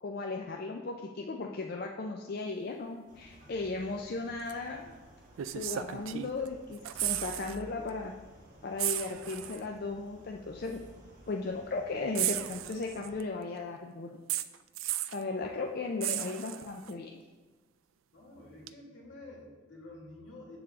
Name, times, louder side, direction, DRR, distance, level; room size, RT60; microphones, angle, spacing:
voice 1, 0.0-4.9 5.5-8.1 8.6-10.8 11.3-14.2 15.1-17.1, left 3 dB, 50° left, 2 dB, 0.5 m, -36 dB
sound 1, 3.1-13.2, right 1 dB, 40° right, 1.6 m, -55 dB
sound 2, 4.5-4.6 5.4-6.5 6.7-7.6 7.9-8.0 8.8-9.6 10.7-10.8 12.1-13.2 14.3-15.2 16.0-16.9 18.7-18.8, right 13 dB, 85° right, 0.3 m, -34 dB
voice 2, 18.1-20.6, left 2 dB, 75° left, -3 dB, 2.2 m, -49 dB
7.2 x 6.8 x 3.7 m, 1.3 s
head